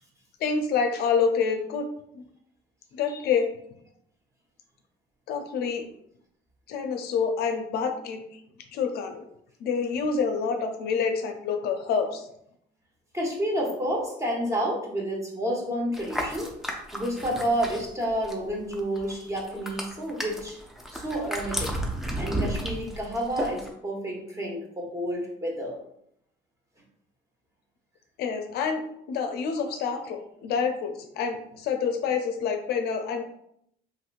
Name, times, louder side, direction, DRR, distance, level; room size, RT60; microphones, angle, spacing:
voice 1, 0.4-1.9 2.1-2.2 2.9-3.5 5.3-5.8 6.7-8.2 8.7-9.3 9.6-12.3 28.2-28.8 29.1-33.2, left 5 dB, 70° left, 6 dB, 0.4 m, -27 dB
voice 2, 13.1-16.5 16.9-20.6 20.9-21.7 22.2-25.8, equal, 15° right, -2 dB, 0.9 m, -30 dB
sound 1, 15.9-18.5 18.7-23.7, right 1 dB, ahead, 0.5 m, -33 dB
3.0 x 3.0 x 2.4 m, 0.73 s
cardioid pair, 110°, 17 cm